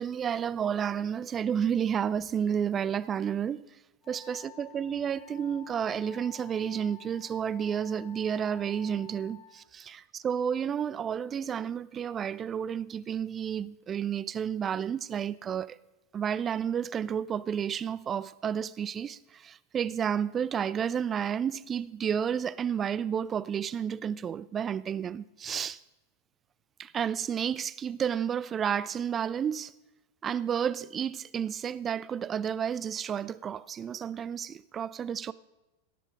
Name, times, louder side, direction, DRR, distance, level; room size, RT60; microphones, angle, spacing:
voice 1, 0.0-3.6 4.1-15.8 16.1-25.8 26.8-29.7 30.2-35.3, right 8 dB, 25° right, 0.3 m, -31 dB
Wind instrument woodwind instrument, 4.0-9.6, left 9 dB, 20° left, 5.3 m, -51 dB
17.0 x 7.6 x 4.8 m
figure-of-eight pair, 90°, 0 cm